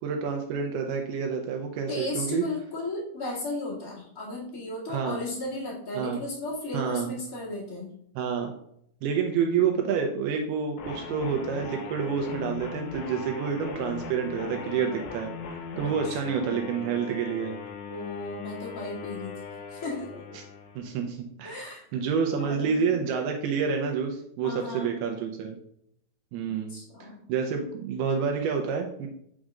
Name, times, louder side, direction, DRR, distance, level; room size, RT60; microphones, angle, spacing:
voice 1, 0.0-2.5 4.9-5.2 6.0-6.2 6.7-7.1 8.2-8.5 9.0-15.3 15.8-17.6 20.4-20.5 20.8-25.6 26.3-26.8 27.3-29.1, right 6 dB, 85° right, 3 dB, 2.4 m, -28 dB
voice 2, 1.9-7.9 16.0-16.7 17.9-19.4 19.7-20.4 21.4-21.8 22.3-23.0 24.4-24.9 26.5-27.2, left 2 dB, 30° left, -7 dB, 1.6 m, -35 dB
sound 1, 10.8-21.0, left 4 dB, 75° left, 2.6 m, -39 dB
6.3 x 6.2 x 2.4 m, 0.71 s
omnidirectional pair, 4.9 m